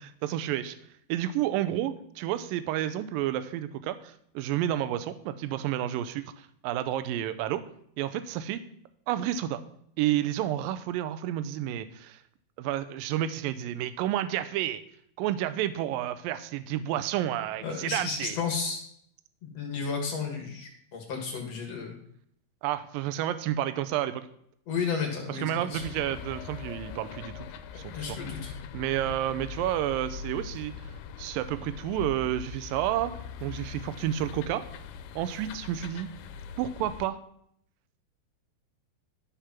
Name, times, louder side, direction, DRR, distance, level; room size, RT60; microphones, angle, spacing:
voice 1, 0.2-0.8 1.1-7.6 8.0-8.6 9.1-9.6 10.0-12.2 12.6-14.8 15.2-18.4 22.6-24.3 25.3-27.5 27.7-27.9 28.7-30.7 31.2-33.1 33.4-34.6 35.2-36.1 36.6-37.2, right 12 dB, 80° right, 12 dB, 2.2 m, -30 dB
voice 2, 17.6-18.8 19.4-21.9 24.7-25.8 27.9-28.6, left 5 dB, 55° left, 1 dB, 2.0 m, -33 dB
sound 1, 25.7-37.1, left 7 dB, 85° left, 2.5 m, -42 dB
12.0 x 5.2 x 5.9 m, 0.69 s
omnidirectional pair, 4.5 m